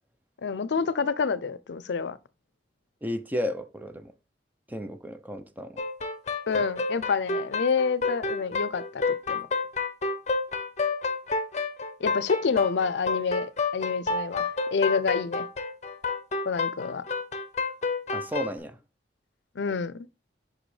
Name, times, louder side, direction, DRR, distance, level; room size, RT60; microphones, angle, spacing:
voice 1, 0.4-2.2 6.5-9.5 12.0-15.5 16.5-17.0 19.6-20.1, left 5 dB, 85° left, 0.5 m, -28 dB
voice 2, 3.0-4.1 4.7-5.8 6.5-6.6 18.1-18.8, left 1 dB, 10° right, 0.6 m, -33 dB
sound 1, 5.8-18.5, left 4 dB, 40° left, 0.7 m, -29 dB
6.1 x 5.2 x 3.2 m
head